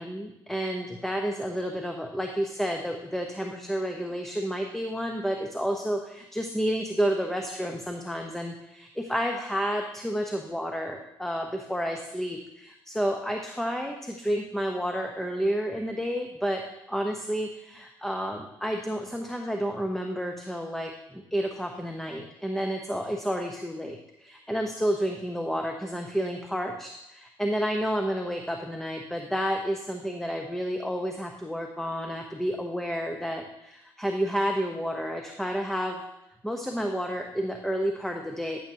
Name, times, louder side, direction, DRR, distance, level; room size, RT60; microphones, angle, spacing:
voice 1, 0.0-16.6 16.9-36.0 36.4-38.6, equal, 5° left, 3 dB, 0.8 m, -30 dB
10.5 x 7.6 x 2.8 m, 0.88 s
supercardioid pair, 75°, 10 cm